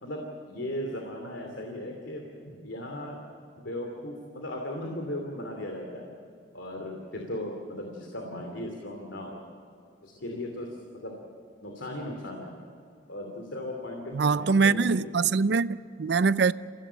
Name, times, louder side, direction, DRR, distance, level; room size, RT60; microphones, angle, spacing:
voice 1, 0.0-3.2 3.6-6.2 6.5-9.4 10.0-11.1 11.6-12.5 13.1-15.4, left 1 dB, 90° left, 2.9 m, -37 dB
voice 2, 14.1-16.5, right 4 dB, 60° right, 0.5 m, -23 dB
28.0 x 16.5 x 8.8 m
head